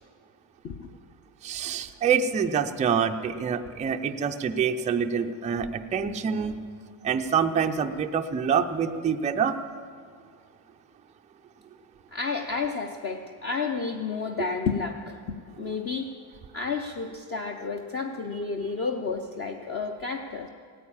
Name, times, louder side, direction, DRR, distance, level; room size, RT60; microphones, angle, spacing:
voice 1, 1.4-6.6 7.0-9.5, right 7 dB, 15° right, 5 dB, 0.4 m, -26 dB
voice 2, 12.1-16.1 16.5-20.5, left 4 dB, 30° left, 3 dB, 0.7 m, -31 dB
16.5 x 9.5 x 8.7 m, 2.1 s
cardioid pair, 150°, 46 cm